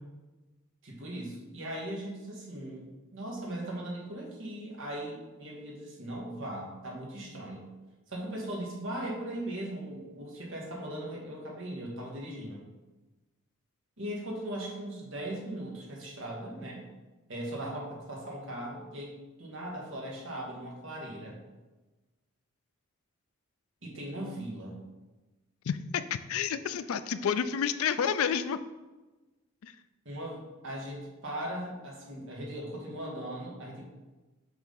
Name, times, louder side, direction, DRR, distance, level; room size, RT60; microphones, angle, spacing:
voice 1, 0.8-2.9 3.1-7.7 8.1-12.6 14.0-16.9 17.3-19.1 19.4-21.4 23.8-24.8 30.0-33.9, right 1 dB, 60° right, -2 dB, 1.6 m, -39 dB
voice 2, 25.7-26.0 26.3-28.6 29.6-29.7, left 7 dB, 75° left, 12 dB, 0.4 m, -29 dB
7.1 x 3.6 x 3.9 m, 1.1 s
head